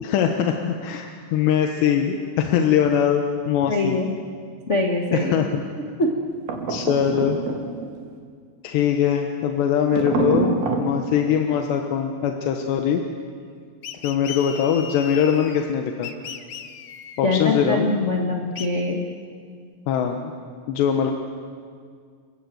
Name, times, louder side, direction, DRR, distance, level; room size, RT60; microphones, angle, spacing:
voice 1, 0.0-4.0 5.1-5.6 6.7-7.4 8.6-13.0 14.0-16.1 17.2-18.0 19.9-20.3 20.7-21.1, left 8 dB, 90° left, 4 dB, 3.4 m, -22 dB
voice 2, 3.7-4.1 4.7-5.5 6.0-6.1 17.2-19.0, left 2 dB, 35° left, 0 dB, 1.1 m, -23 dB
sound 1, 6.5-7.9 9.9-10.9, right 4 dB, 70° right, 4.3 m, -25 dB
sound 2, 13.8-15.7 16.0-17.2 18.6-18.7, left 8 dB, 65° left, 1.7 m, -36 dB
29.5 x 24.0 x 7.9 m, 2.1 s
omnidirectional pair, 4.8 m